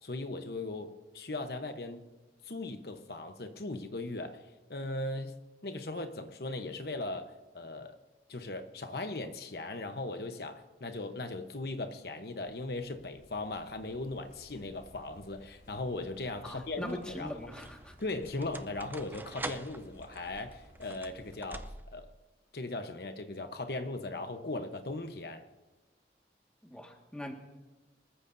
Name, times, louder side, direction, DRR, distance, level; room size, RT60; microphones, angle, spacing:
voice 1, 0.0-2.1 2.4-8.0 8.3-17.4 18.0-22.1 22.5-25.4, left 2 dB, 65° left, 1.0 m, -38 dB
sound 1, 12.4-21.4, equal, 50° left, 5.6 m, -57 dB
sound 2, 15.3-15.8 16.7-22.2, right 2 dB, 10° right, 0.4 m, -46 dB
voice 2, 16.4-17.9 26.6-27.3, left 1 dB, 5° left, 1.7 m, -42 dB
24.5 x 14.5 x 2.7 m
head